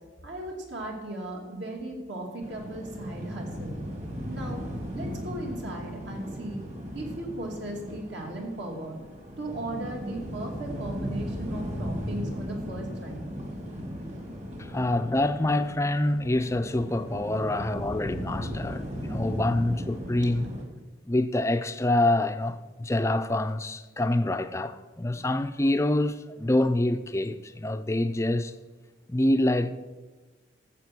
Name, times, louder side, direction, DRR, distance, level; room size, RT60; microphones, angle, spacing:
voice 1, 0.2-3.8 4.3-4.6 4.9-6.6 6.9-9.0 9.4-13.3, right 1 dB, 65° right, 2.6 m, -36 dB
sound 1, 2.4-20.6, equal, 35° right, 2.0 m, -37 dB
voice 2, 14.6-20.5 21.1-28.5 29.1-29.7, left 1 dB, 15° left, 0.4 m, -26 dB
14.5 x 7.5 x 6.1 m
head